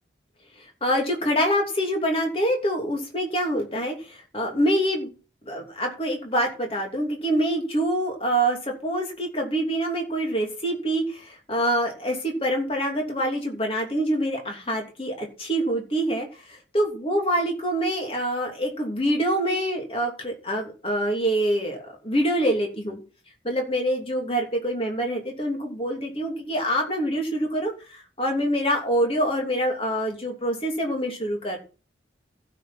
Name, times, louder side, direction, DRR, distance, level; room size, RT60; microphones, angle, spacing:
voice 1, 0.8-5.1 5.4-16.3 16.7-21.8 22.0-23.0 23.4-31.6, right 1 dB, 30° left, 2 dB, 3.0 m, -25 dB
15.5 x 6.7 x 4.4 m, 0.34 s
head